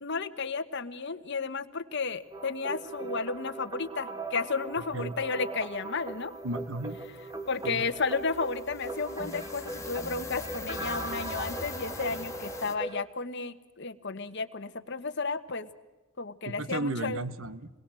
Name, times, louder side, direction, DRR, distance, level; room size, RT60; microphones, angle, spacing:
voice 1, 0.0-6.3 7.5-15.7 16.2-17.2, left 4 dB, 55° left, 9 dB, 1.4 m, -33 dB
sound 1, 2.3-13.0, right 2 dB, 20° right, 1.7 m, -39 dB
sound 2, 4.4-4.5 4.7-4.9 5.2-12.8, left 3 dB, 15° left, 2.0 m, -43 dB
voice 2, 6.4-7.0 7.6-7.9 16.5-17.7, right 2 dB, 65° right, 14 dB, 1.4 m, -34 dB
28.0 x 22.0 x 7.7 m, 1.2 s
head